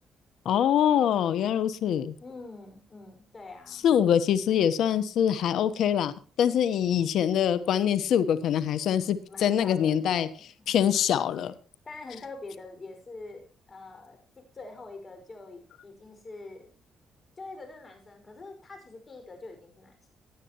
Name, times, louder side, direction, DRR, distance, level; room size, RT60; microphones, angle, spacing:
voice 1, 0.4-2.1 3.8-6.1 6.4-10.3 10.7-11.5, left 9 dB, 75° left, 14 dB, 1.1 m, -24 dB
voice 2, 2.2-3.9 9.3-10.7 11.8-16.7 17.4-20.1, left 3 dB, 35° left, 5 dB, 5.5 m, -45 dB
17.5 x 10.0 x 3.0 m, 0.37 s
cardioid pair, 90°, 0 cm